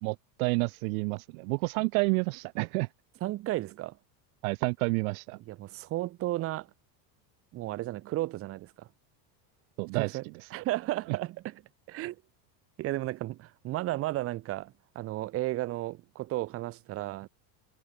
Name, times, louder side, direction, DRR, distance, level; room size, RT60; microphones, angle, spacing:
voice 1, 0.0-2.9 4.4-5.4 9.8-10.2, right 31 dB, 60° right, 0.6 m, -29 dB
voice 2, 3.2-4.0 5.5-6.7 7.5-8.9 9.9-10.2 10.5-11.6 11.9-12.2 12.8-17.3, right 16 dB, 30° right, 0.8 m, -34 dB
cardioid pair, 160°, 49 cm